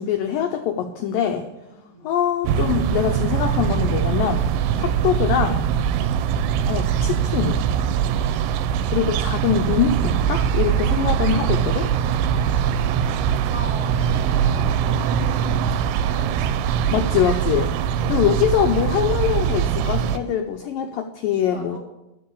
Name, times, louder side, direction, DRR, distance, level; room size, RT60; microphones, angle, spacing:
voice 1, 0.0-1.5 2.0-4.4 4.8-5.7 6.7-7.6 8.9-11.9 16.9-17.7 18.1-21.8, left 8 dB, 85° left, 6 dB, 2.0 m, -23 dB
voice 2, 1.7-2.1 12.5-16.3 16.8-17.1 21.3-21.8, right 1 dB, 35° right, -3 dB, 1.9 m, -42 dB
sound 1, 2.5-20.2, right 8 dB, 90° right, 2.8 m, -22 dB
12.5 x 4.7 x 8.5 m, 0.93 s
omnidirectional pair, 4.8 m